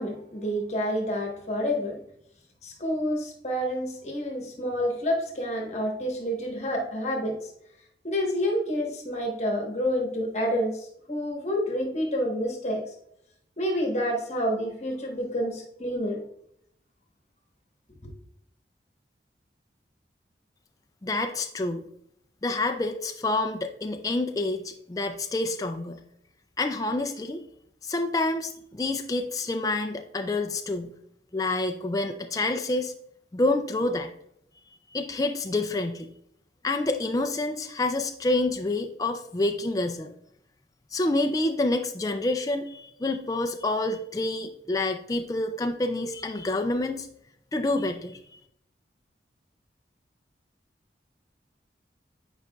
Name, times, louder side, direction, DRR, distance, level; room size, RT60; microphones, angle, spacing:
voice 1, 0.0-2.0 2.6-7.5 8.0-12.8 13.6-16.2 18.0-18.1, equal, 40° left, 1 dB, 1.2 m, -28 dB
voice 2, 21.0-21.9 22.4-26.0 26.6-27.4 27.8-30.9 31.3-32.9 33.3-34.1 34.9-36.1 36.6-40.1 40.9-47.1 47.5-48.4, left 2 dB, 20° left, 5 dB, 0.4 m, -28 dB
8.9 x 5.0 x 2.3 m, 0.73 s
head